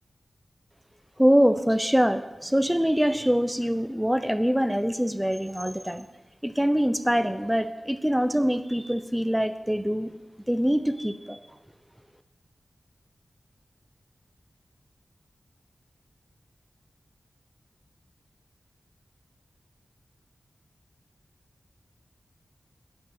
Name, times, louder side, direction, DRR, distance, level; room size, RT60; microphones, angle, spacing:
voice 1, 1.2-6.1 6.4-10.1 10.5-11.4, equal, 5° right, 10 dB, 0.8 m, -24 dB
12.0 x 6.0 x 8.7 m, 1.0 s
wide cardioid pair, 65°, 0 cm